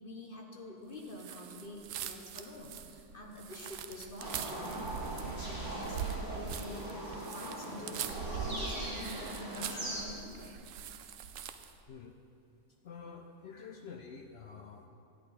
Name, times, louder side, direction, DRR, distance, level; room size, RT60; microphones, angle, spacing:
voice 1, 0.0-10.5, left 1 dB, 40° left, 1 dB, 1.2 m, -47 dB
sound 1, 1.1-11.8, right 8 dB, 70° right, 0.9 m, -42 dB
sound 2, 4.2-10.0, right 1 dB, 15° right, 1.6 m, -40 dB
voice 2, 11.9-12.2 12.8-14.9, left 5 dB, 65° left, 4 dB, 0.6 m, -48 dB
10.5 x 9.5 x 4.1 m, 2.6 s
omnidirectional pair, 1.5 m